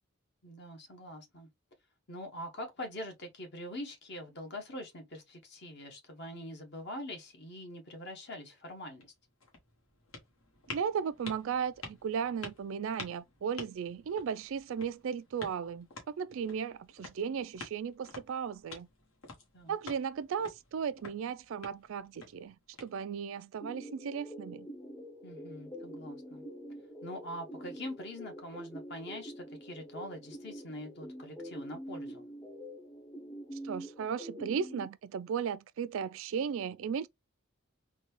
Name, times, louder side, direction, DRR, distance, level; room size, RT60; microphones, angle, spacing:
voice 1, 0.4-1.5 2.1-9.1 19.5-19.8 25.2-26.5 27.0-32.3, left 1 dB, 50° left, 1.1 m, -44 dB
sound 1, 8.9-23.4, left 3 dB, 75° left, 1.4 m, -50 dB
voice 2, 10.7-18.9 19.7-22.6 22.8-24.7 33.6-37.1, right 7 dB, 65° right, 0.3 m, -36 dB
sound 2, 23.6-34.9, equal, 15° left, 0.6 m, -46 dB
3.8 x 2.3 x 3.1 m
head